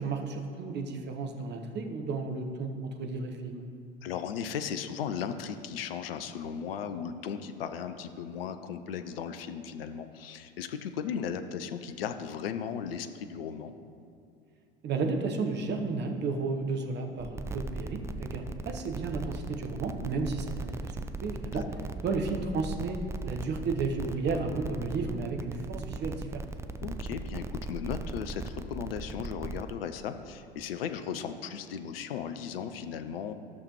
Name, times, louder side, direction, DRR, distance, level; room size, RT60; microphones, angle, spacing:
voice 1, 0.0-3.7 14.8-21.0 21.2-21.6 22.0-23.0 23.2-26.4, right 4 dB, 35° right, 4 dB, 1.1 m, -33 dB
voice 2, 4.0-13.7 21.5-21.7 26.8-33.3, left 7 dB, 70° left, 9 dB, 0.6 m, -36 dB
sound 1, 17.2-29.7, right 3 dB, 10° right, 0.3 m, -38 dB
14.5 x 6.5 x 3.0 m, 2.5 s
figure-of-eight pair, 65°, 30 cm